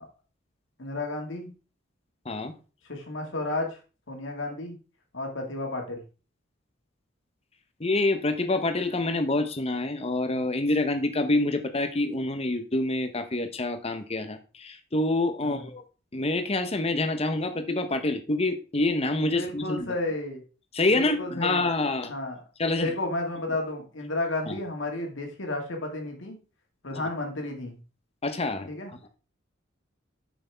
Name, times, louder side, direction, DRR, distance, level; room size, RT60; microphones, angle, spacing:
voice 1, 0.8-1.5 2.9-3.8 4.1-4.8 5.1-6.0 15.4-15.6 19.3-20.4 20.9-21.6 22.1-22.4 22.7-26.4 26.8-27.8 28.7-28.9, left 2 dB, 65° left, 2 dB, 2.0 m, -32 dB
voice 2, 7.8-15.8 16.1-19.9 20.7-22.1 22.6-22.9 24.5-24.6 28.2-28.7, left 2 dB, 30° left, 9 dB, 0.9 m, -27 dB
8.1 x 6.1 x 3.4 m, 0.34 s
head